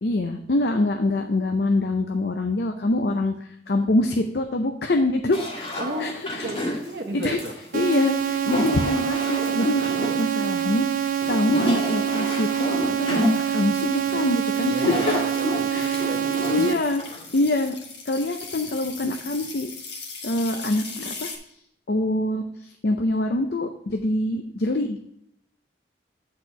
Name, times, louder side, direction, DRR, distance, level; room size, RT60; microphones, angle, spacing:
voice 1, 0.0-6.5 7.1-7.4 7.7-9.9 10.2-13.2 13.5-14.8 15.7-16.1 16.5-17.0 17.3-17.8 18.1-19.7 20.2-21.3 21.9-25.0, left 2 dB, 60° left, 5 dB, 0.6 m, -25 dB
sound 1, 5.3-17.4, left 1 dB, 30° left, 1.8 m, -30 dB
voice 2, 5.8-6.1 6.4-7.5 12.9-13.0 14.0-14.2 14.6-16.8, right 1 dB, 75° right, 1 dB, 0.9 m, -33 dB
sound 2, 7.7-16.7, right 9 dB, 45° right, 0.4 m, -25 dB
sound 3, 11.0-21.4, left 4 dB, 80° left, 1.5 m, -40 dB
8.1 x 4.4 x 5.2 m, 0.75 s
head